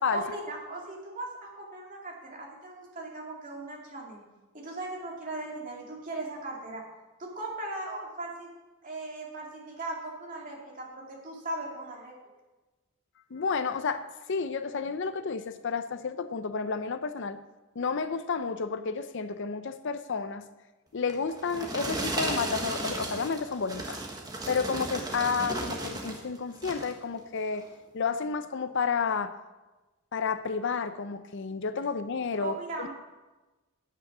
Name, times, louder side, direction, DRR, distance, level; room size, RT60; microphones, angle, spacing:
voice 1, 0.1-4.2 4.5-6.8 7.2-8.5 8.8-12.1 32.3-32.9, right 2 dB, 40° right, -2 dB, 2.5 m, -38 dB
voice 2, 13.3-17.4 17.8-20.4 20.9-24.0 24.5-27.7 27.9-29.3 30.1-32.9, left 5 dB, 55° left, 11 dB, 0.5 m, -31 dB
sound 1, 21.1-26.2 26.5-27.0 27.5-27.7, right 2 dB, 20° right, 1.3 m, -35 dB
8.9 x 8.8 x 6.1 m, 1.1 s
head